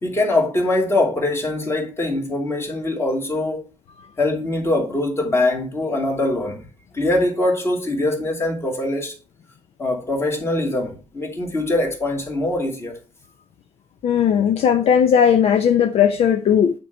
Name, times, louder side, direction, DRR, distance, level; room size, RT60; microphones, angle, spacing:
voice 1, 0.0-3.6 4.2-6.6 6.9-9.1 9.8-12.9, left 2 dB, 20° left, 2.3 m, -22 dB
voice 2, 14.0-16.7, left 8 dB, 55° left, 0.6 m, -17 dB
9.0 x 4.6 x 5.1 m
cardioid pair, 170°, 12 cm